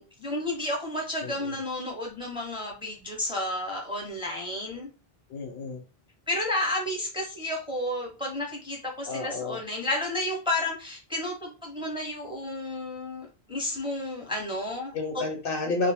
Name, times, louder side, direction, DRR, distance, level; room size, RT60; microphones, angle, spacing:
voice 1, 0.0-4.9 6.3-14.9 15.6-15.7, left 1 dB, 5° right, 0 dB, 0.6 m, -32 dB
voice 2, 1.2-1.6 5.3-5.8 9.1-9.6 14.9-15.9, left 3 dB, 65° left, 3 dB, 0.8 m, -31 dB
2.4 x 2.0 x 3.3 m, 0.35 s
omnidirectional pair, 1.0 m